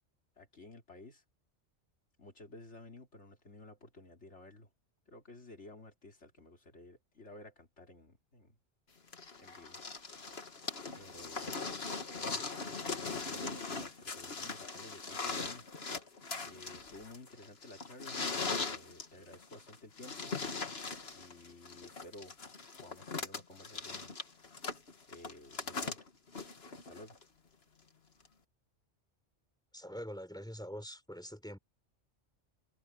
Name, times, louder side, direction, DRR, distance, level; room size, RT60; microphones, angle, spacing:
voice 1, 0.4-1.2 2.2-4.7 5.1-8.6 9.4-9.8 10.9-11.6 12.1-15.7 16.4-18.2 18.5-20.3 21.1-22.3 22.8-24.1 25.1-26.1 26.7-27.2, left 2 dB, 75° left, 3.7 m, -53 dB
sound 1, 9.1-27.2 28.3-28.4, left 4 dB, 60° left, 2.0 m, -40 dB
voice 2, 29.7-31.6, equal, 5° left, 4.2 m, -44 dB
omnidirectional pair, 1.2 m